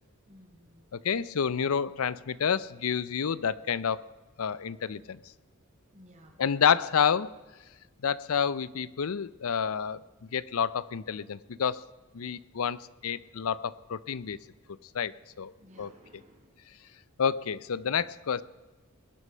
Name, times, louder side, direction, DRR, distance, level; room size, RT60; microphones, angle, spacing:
voice 1, 0.3-0.9 5.9-6.4 15.6-16.5, equal, 35° right, 2 dB, 3.0 m, -56 dB
voice 2, 0.9-4.1 4.4-5.2 6.4-7.3 8.0-10.0 10.3-11.8 12.1-14.4 14.9-15.1 15.4-15.5 15.8-15.9 17.2-18.4, left 7 dB, 70° left, 19 dB, 0.5 m, -29 dB
21.0 x 8.1 x 5.6 m, 1.3 s
head